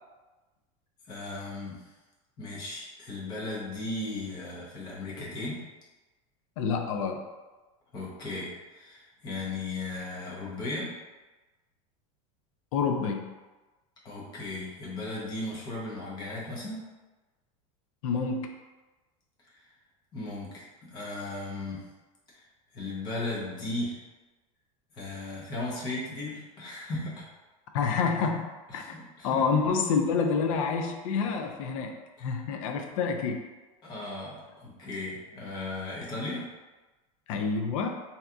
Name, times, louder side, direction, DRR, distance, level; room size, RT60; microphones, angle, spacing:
voice 1, 1.1-1.8 2.4-5.6 7.9-10.9 14.0-16.8 20.1-21.9 22.3-22.4 22.7-24.0 24.9-27.2 28.7-29.6 32.2-32.3 33.8-36.5, left 2 dB, 25° left, -5 dB, 0.7 m, -36 dB
voice 2, 6.6-7.2 12.7-13.3 18.0-18.5 27.7-28.4 28.7-28.8 29.2-31.9 32.2-33.4 37.3-37.9, left 5 dB, 70° left, 4 dB, 0.4 m, -27 dB
2.7 x 2.3 x 3.5 m, 1.2 s
supercardioid pair, 175°, 17 cm